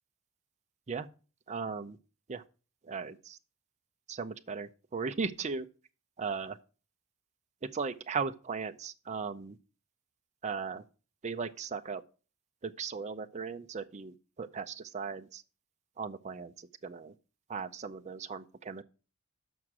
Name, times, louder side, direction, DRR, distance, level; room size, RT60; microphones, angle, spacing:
voice 1, 1.5-2.0 2.3-2.4 2.8-3.4 4.1-5.7 6.2-6.5 7.6-9.6 10.4-10.8 11.2-12.0 12.6-15.4 16.0-17.1 17.5-18.8, right 5 dB, 30° right, 0.5 m, -37 dB
6.3 x 6.0 x 7.3 m
head